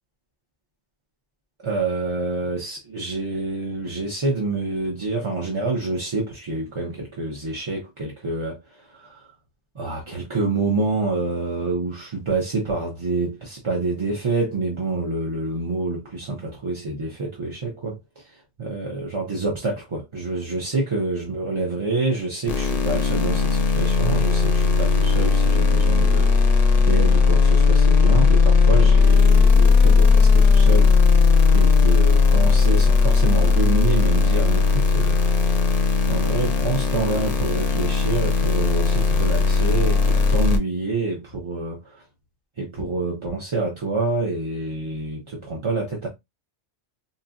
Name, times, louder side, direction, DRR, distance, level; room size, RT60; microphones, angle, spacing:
voice 1, 1.6-9.3 9.7-30.9 31.5-35.2 36.1-42.0 42.6-46.1, right 3 dB, 35° right, 0.6 m, -27 dB
sound 1, 22.5-40.6, left 4 dB, 45° left, 0.5 m, -17 dB
4.0 x 2.1 x 2.4 m
omnidirectional pair, 1.2 m